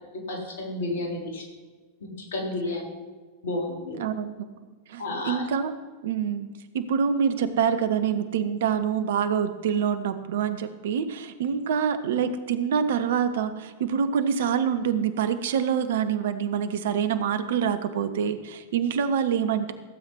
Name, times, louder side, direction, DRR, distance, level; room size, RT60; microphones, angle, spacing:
voice 1, 0.3-1.4 2.0-2.8 3.4-4.0 5.0-5.4, left 2 dB, 60° left, -1 dB, 3.7 m, -31 dB
voice 2, 4.0-4.5 4.9-5.7 6.0-6.5 6.7-19.7, right 7 dB, 60° right, 10 dB, 1.0 m, -26 dB
15.5 x 7.8 x 4.6 m, 1.4 s
figure-of-eight pair, 90°, 0 cm